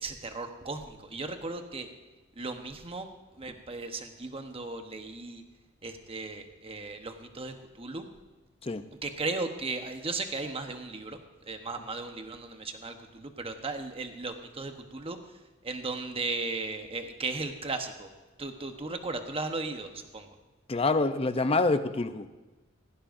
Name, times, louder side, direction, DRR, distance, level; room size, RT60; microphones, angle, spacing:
voice 1, 0.0-1.9 2.4-3.1 3.4-5.4 5.8-8.0 9.0-11.2 11.5-15.2 15.6-18.1 18.4-20.3, right 3 dB, 30° right, 6 dB, 1.0 m, -36 dB
voice 2, 20.7-22.3, left 3 dB, 30° left, 10 dB, 0.6 m, -26 dB
17.0 x 15.5 x 2.6 m, 1.2 s
head